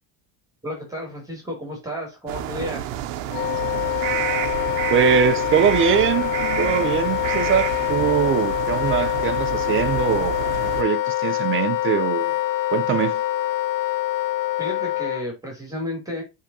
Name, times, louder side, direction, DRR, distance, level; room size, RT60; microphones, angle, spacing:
voice 1, 0.6-2.8 14.6-16.2, equal, 10° right, 2.7 m, -32 dB
sound 1, 2.3-10.8, right 11 dB, 85° right, 0.9 m, -29 dB
Wind instrument woodwind instrument, 3.3-15.2, left 15 dB, 75° left, 1.0 m, -25 dB
voice 2, 4.9-6.3 6.6-10.5 10.8-12.3 12.7-13.2, right 8 dB, 30° right, 0.7 m, -22 dB
9.8 x 3.7 x 2.8 m
cardioid pair, 125°, 39 cm